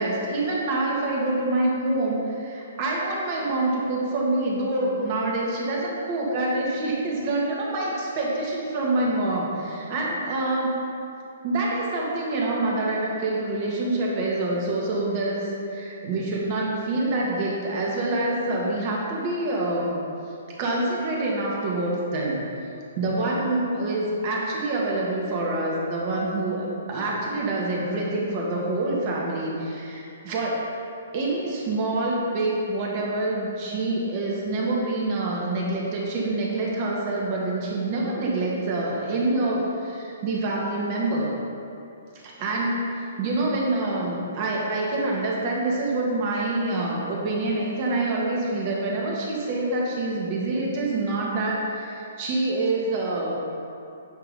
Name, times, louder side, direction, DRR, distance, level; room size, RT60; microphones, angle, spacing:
voice 1, 0.0-10.8 11.4-20.0 20.6-22.4 23.0-30.6 31.1-41.3 42.2-53.4, right 2 dB, 40° right, -3 dB, 1.8 m, -26 dB
9.7 x 3.8 x 5.4 m, 2.6 s
figure-of-eight pair, 125°, 0 cm